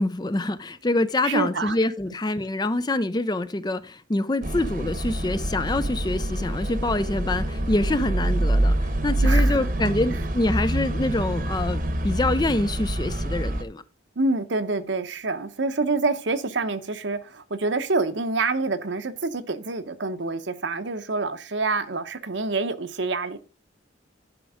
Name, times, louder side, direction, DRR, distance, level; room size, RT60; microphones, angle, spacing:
voice 1, 0.0-13.8, left 2 dB, 20° left, 0.4 m, -26 dB
voice 2, 1.2-1.8 9.2-9.9 14.2-23.4, right 3 dB, 65° right, 0.9 m, -27 dB
sound 1, 4.4-13.6, right 1 dB, 45° right, 1.0 m, -25 dB
11.0 x 5.3 x 4.9 m
head